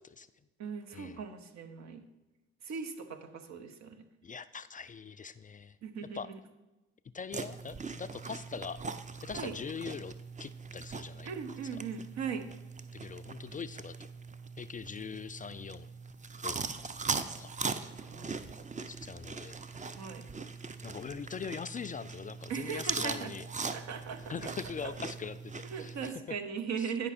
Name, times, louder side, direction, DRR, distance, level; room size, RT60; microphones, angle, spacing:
voice 1, 0.6-2.0 2.6-4.0 5.8-6.4 9.3-9.5 11.2-12.5 18.0-18.3 20.0-20.2 22.5-23.3 23.7-24.5 24.8-24.9 25.7-27.1, right 6 dB, 65° right, 7 dB, 0.9 m, -39 dB
voice 2, 4.2-5.8 6.1-6.3 7.1-8.8 9.2-10.1 10.4-11.3 11.7-11.8 12.9-14.1 14.6-15.9 16.4-16.6 17.4-17.5 18.9-19.6 20.8-23.8 24.3-26.4 26.8-26.9, left 6 dB, 30° left, 13 dB, 0.3 m, -42 dB
sound 1, 7.3-26.1, right 4 dB, 25° right, 0.6 m, -40 dB
9.6 x 5.2 x 4.2 m, 1.1 s
hypercardioid pair, 40°, 30 cm